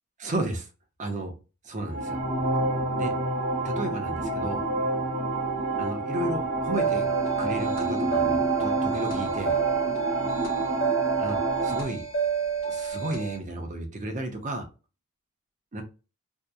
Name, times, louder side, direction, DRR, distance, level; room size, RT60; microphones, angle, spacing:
voice 1, 0.2-0.7 1.0-1.3 1.6-2.2 3.0-3.2 3.6-4.6 5.8-7.1 7.4-9.6 11.2-12.0 12.6-14.7 15.7-15.8, right 2 dB, 35° right, 4 dB, 0.6 m, -33 dB
sound 1, 1.8-11.8, right 2 dB, 65° right, 1.0 m, -28 dB
sound 2, 6.7-13.4, right 6 dB, 60° left, 1.0 m, -29 dB
2.7 x 2.1 x 2.2 m, 0.32 s
head